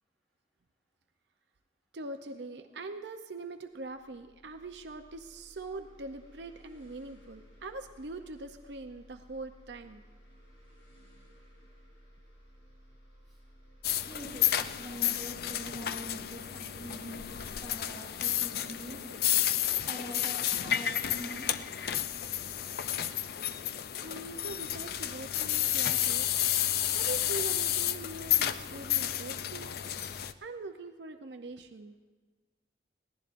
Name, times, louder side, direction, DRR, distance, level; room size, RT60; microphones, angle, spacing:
voice 1, 1.9-10.0 24.0-26.3 26.6-29.7 30.4-32.0, right 2 dB, 70° right, 7 dB, 0.6 m, -42 dB
sound 1, 3.7-19.1, equal, 80° left, 4.2 m, -58 dB
sound 2, 13.8-30.3, left 11 dB, 55° left, 0.4 m, -31 dB
voice 2, 14.1-19.0 19.8-21.6, equal, ahead, -8 dB, 5.0 m, -44 dB
21.5 x 16.0 x 2.6 m, 1.3 s
head